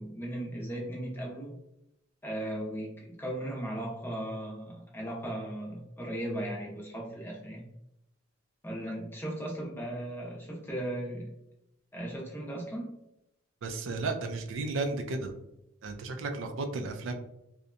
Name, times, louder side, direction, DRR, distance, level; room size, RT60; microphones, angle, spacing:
voice 1, 0.0-1.6 2.2-7.7 8.6-11.3 11.9-12.9, right 1 dB, 10° left, -3 dB, 0.6 m, -37 dB
voice 2, 13.6-15.3 15.8-17.1, right 3 dB, 70° right, 5 dB, 0.4 m, -33 dB
2.7 x 2.1 x 2.4 m, 0.84 s
head